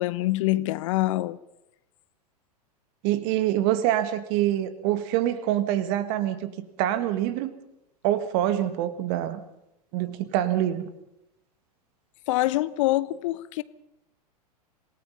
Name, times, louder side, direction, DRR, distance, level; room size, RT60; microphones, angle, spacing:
voice 1, 0.0-1.4 12.3-13.6, left 17 dB, 50° left, 0.8 m, -25 dB
voice 2, 3.0-6.5 6.8-7.6 8.0-9.4 9.9-10.9, right 12 dB, 45° right, 1.9 m, -25 dB
27.0 x 18.0 x 5.5 m
figure-of-eight pair, 95°, 21 cm